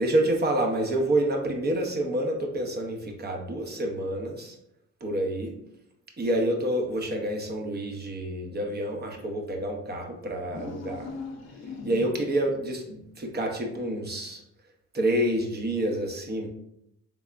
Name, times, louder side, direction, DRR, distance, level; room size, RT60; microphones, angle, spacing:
voice 1, 0.0-4.6 5.0-5.5 6.2-11.1 11.8-14.4 14.9-16.5, right 1 dB, 35° right, 2 dB, 0.8 m, -28 dB
sound 1, 10.4-12.4, left 3 dB, 60° left, 0.7 m, -39 dB
3.4 x 3.3 x 2.5 m, 0.79 s
cardioid pair, 90°, 30 cm